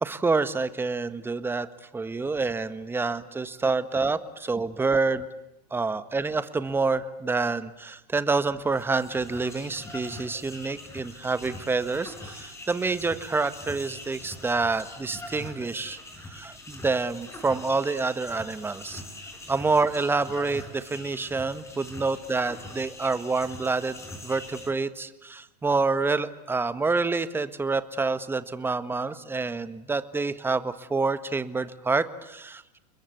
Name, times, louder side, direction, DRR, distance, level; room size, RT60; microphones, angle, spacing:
voice 1, 0.0-1.7 1.9-5.3 5.7-16.0 16.3-19.0 19.5-32.8, right 3 dB, 10° right, 13 dB, 1.5 m, -27 dB
sound 1, 8.6-24.7, left 2 dB, 15° left, 5.7 m, -43 dB
29.5 x 21.5 x 8.4 m, 0.91 s
hypercardioid pair, 110°, 21 cm